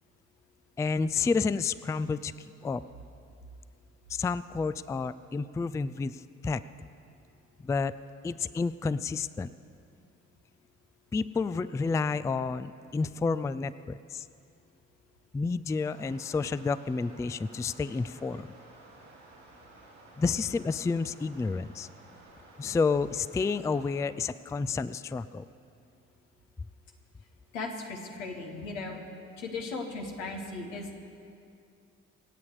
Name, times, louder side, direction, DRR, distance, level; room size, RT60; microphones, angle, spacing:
voice 1, 0.8-2.3 2.6-2.8 4.1-6.6 7.6-7.9 8.2-9.5 11.1-14.2 15.3-18.5 20.2-21.9 22.6-25.5, left 4 dB, 10° left, 15 dB, 0.3 m, -30 dB
sound 1, 15.8-24.1, right 2 dB, 90° right, 3.9 m, -54 dB
voice 2, 27.5-29.0 29.4-31.0, left 3 dB, 85° left, 2 dB, 1.3 m, -37 dB
25.0 x 8.4 x 4.9 m, 2.5 s
hypercardioid pair, 45°, 36 cm